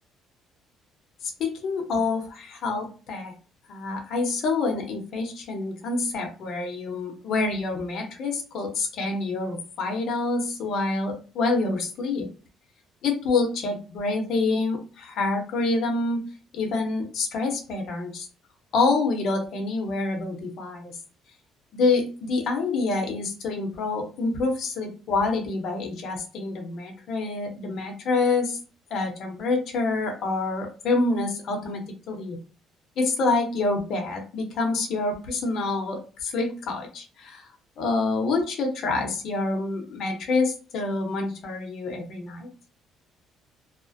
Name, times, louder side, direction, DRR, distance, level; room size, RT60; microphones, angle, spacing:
voice 1, 1.4-3.3 3.7-12.3 13.0-16.2 16.5-18.3 18.7-20.9 21.7-28.6 28.9-32.4 33.0-37.4 37.8-42.5, left 3 dB, 60° left, 2 dB, 0.7 m, -27 dB
2.4 x 2.1 x 2.5 m, 0.37 s
cardioid pair, 130°, 0 cm